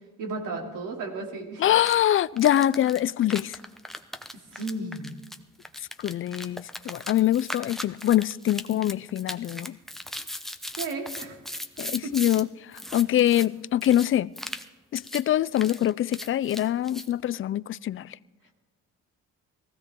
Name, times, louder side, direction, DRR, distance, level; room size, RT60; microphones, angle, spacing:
voice 1, 0.2-1.7 4.5-5.1 10.7-11.4 12.0-12.1, right 3 dB, 85° right, 3.2 m, -34 dB
voice 2, 1.6-3.5 6.0-9.8 11.8-12.5 12.9-14.3 14.9-18.0, left 12 dB, 45° left, 0.4 m, -24 dB
sound 1, 1.8-2.0 2.4-12.4 12.7-13.5 13.8-14.1 14.4-14.7 15.0-15.2 15.5-17.1, left 1 dB, ahead, 0.8 m, -38 dB
19.5 x 15.5 x 3.8 m
cardioid pair, 90°, 30 cm